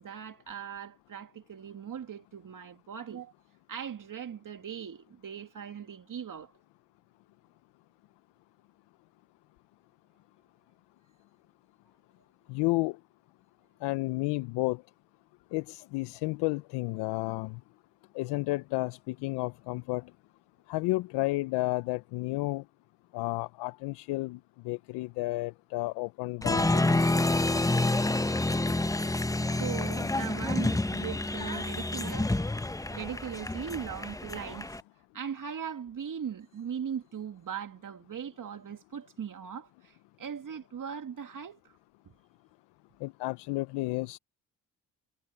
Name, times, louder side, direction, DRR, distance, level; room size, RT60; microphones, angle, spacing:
voice 1, 0.0-3.3 3.7-6.5 29.5-32.5 32.9-34.8 35.1-41.8, right 8 dB, 55° right, 2.3 m, -39 dB
voice 2, 12.5-13.0 13.8-14.8 15.5-17.6 18.1-20.1 20.7-22.6 23.1-24.4 24.6-27.0 43.0-44.2, left 22 dB, 85° left, 0.7 m, -32 dB
Applause, 26.4-34.8, left 2 dB, 10° left, 0.9 m, -28 dB
supercardioid pair, 50°, 39 cm